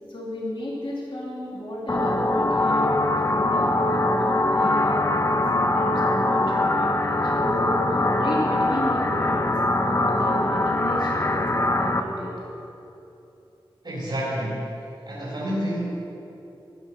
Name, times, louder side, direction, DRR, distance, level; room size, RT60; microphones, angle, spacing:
voice 1, 0.1-5.2 5.5-12.3, left 1 dB, 65° left, -5 dB, 2.8 m, -33 dB
sound 1, 1.9-12.0, left 2 dB, 30° left, 1.0 m, -22 dB
voice 2, 13.8-14.7 15.1-15.8, equal, 55° right, -6 dB, 3.8 m, -28 dB
14.5 x 9.9 x 6.0 m, 2.9 s
cardioid pair, 50°, 9 cm